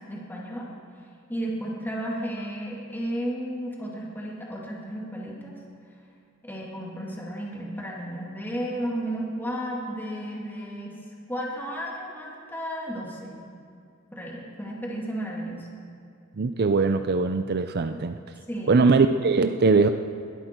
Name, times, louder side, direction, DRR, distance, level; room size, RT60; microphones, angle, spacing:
voice 1, 0.1-0.7 1.3-5.5 6.4-10.9 11.3-13.4 14.1-15.7 18.5-18.9, equal, 10° left, -4 dB, 2.3 m, -33 dB
voice 2, 16.4-18.2 18.7-19.9, right 4 dB, 50° right, 8 dB, 0.5 m, -21 dB
21.0 x 12.0 x 4.6 m, 2.5 s
head